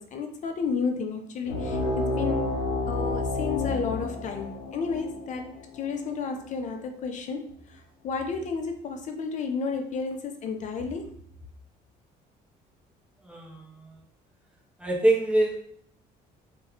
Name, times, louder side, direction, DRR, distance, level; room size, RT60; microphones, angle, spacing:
voice 1, 0.0-2.5 2.9-11.2, left 5 dB, 45° left, 5 dB, 0.4 m, -32 dB
sound 1, 1.5-6.6, left 2 dB, 85° left, 0.7 m, -30 dB
voice 2, 13.2-13.9 14.8-15.7, right 1 dB, 5° right, -1 dB, 0.6 m, -25 dB
2.2 x 2.2 x 3.5 m, 0.64 s
cardioid pair, 110°, 17 cm